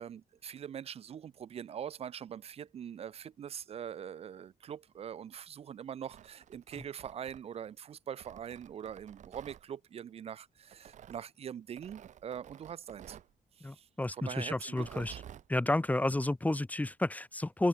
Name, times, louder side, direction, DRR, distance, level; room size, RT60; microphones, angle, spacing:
voice 1, 0.0-13.2 13.6-15.2, right 8 dB, 50° right, 0.5 m, -43 dB
Tearing, 5.9-7.7 8.2-9.6 10.7-11.2 11.8-13.3 14.6-15.5, right 10 dB, 65° right, 1.3 m, -52 dB
voice 2, 13.6-15.1 15.5-17.7, left 2 dB, 10° left, 1.0 m, -31 dB
open air
cardioid pair, 80°, 13 cm